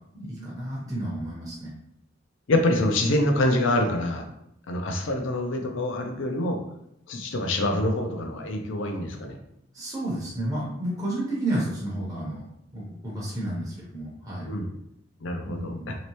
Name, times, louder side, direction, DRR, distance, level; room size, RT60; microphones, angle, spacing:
voice 1, 0.1-1.7 9.7-12.4 12.7-14.5 15.4-16.0, right 1 dB, 20° right, -6 dB, 0.9 m, -31 dB
voice 2, 2.5-4.2 4.7-6.6 7.1-9.4 14.5-14.7 15.2-15.7, left 1 dB, 70° left, 4 dB, 0.6 m, -25 dB
3.1 x 2.9 x 3.0 m, 0.77 s
head